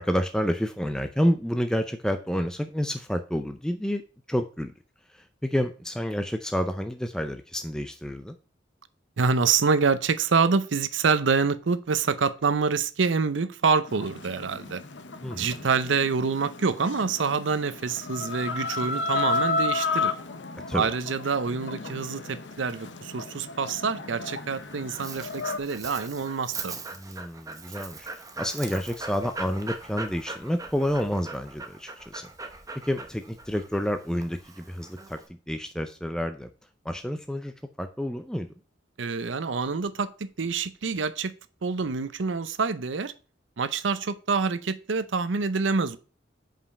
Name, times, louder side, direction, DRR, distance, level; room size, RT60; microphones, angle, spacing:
voice 1, 0.0-4.0 4.3-4.7 5.1-8.4 15.2-15.6 20.7-20.9 26.9-28.1 28.4-32.3 32.8-35.2 35.5-36.5 36.8-38.5, equal, 5° left, 0.4 m, -29 dB
voice 2, 9.2-14.8 15.4-20.1 20.7-26.8 39.0-41.3 41.6-43.1 43.6-46.0, right 5 dB, 90° right, 0.6 m, -26 dB
Chicken rooster, 13.9-25.6, left 3 dB, 75° left, 0.9 m, -33 dB
Dog, 24.5-35.3, right 3 dB, 20° right, 0.8 m, -40 dB
5.5 x 5.1 x 6.3 m
head